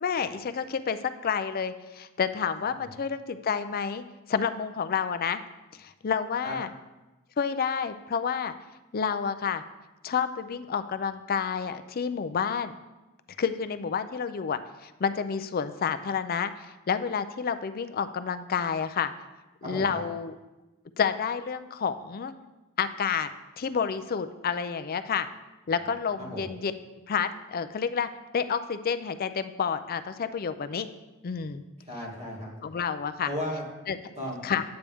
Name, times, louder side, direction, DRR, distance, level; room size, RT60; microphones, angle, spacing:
voice 1, 0.0-5.4 5.8-6.7 7.4-8.5 8.9-9.6 10.0-12.7 13.4-19.1 19.6-20.4 21.0-22.3 22.8-23.3 23.6-25.3 25.7-26.7 27.1-30.9 31.2-31.6 32.6-33.3 33.9-34.0 34.4-34.6, left 6 dB, 45° left, 11 dB, 0.4 m, -29 dB
voice 2, 19.6-20.0 26.2-26.4 31.9-32.5 33.2-33.7 34.2-34.4, equal, 30° right, -3 dB, 2.2 m, -35 dB
8.8 x 8.2 x 3.5 m, 1.1 s
head